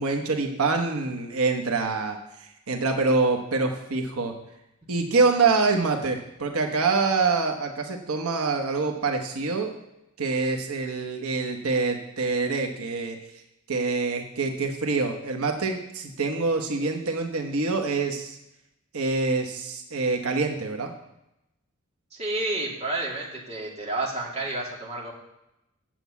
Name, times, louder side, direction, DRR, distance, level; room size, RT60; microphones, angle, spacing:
voice 1, 0.0-4.4 4.9-9.7 10.2-13.2 13.7-18.4 18.9-20.9, right 3 dB, 90° right, 4 dB, 1.1 m, -25 dB
voice 2, 22.1-25.1, right 2 dB, 30° right, -3 dB, 2.4 m, -30 dB
7.7 x 7.3 x 8.2 m, 0.89 s
head